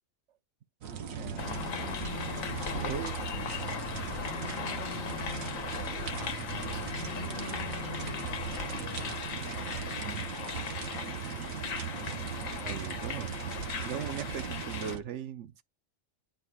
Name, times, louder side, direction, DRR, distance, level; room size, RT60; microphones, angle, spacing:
sound 1, 0.8-15.0, right 8 dB, 90° right, 1.3 m, -38 dB
voice 1, 1.1-1.7 2.7-3.2 10.0-10.2 12.6-13.4 13.8-15.6, right 8 dB, 65° right, 1.0 m, -39 dB
sound 2, 1.2-9.1, left 8 dB, 55° left, 1.1 m, -44 dB
sound 3, 1.4-15.0, left 6 dB, 80° left, 1.2 m, -39 dB
voice 2, 2.6-5.0 5.4-6.4 6.7-9.1 11.1-11.5, right 3 dB, 50° right, 2.8 m, -53 dB
11.5 x 4.4 x 2.2 m
omnidirectional pair, 1.4 m